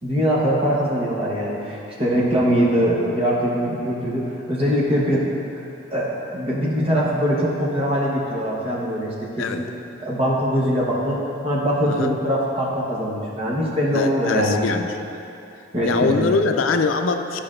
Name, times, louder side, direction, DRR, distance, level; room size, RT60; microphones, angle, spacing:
voice 1, 0.0-5.3 5.9-9.6 10.0-11.2 11.4-14.6 15.7-16.3, equal, 30° right, -5 dB, 1.0 m, -22 dB
voice 2, 13.9-15.1 15.8-17.4, left 4 dB, 85° left, 6 dB, 0.4 m, -23 dB
10.5 x 5.1 x 2.5 m, 2.8 s
head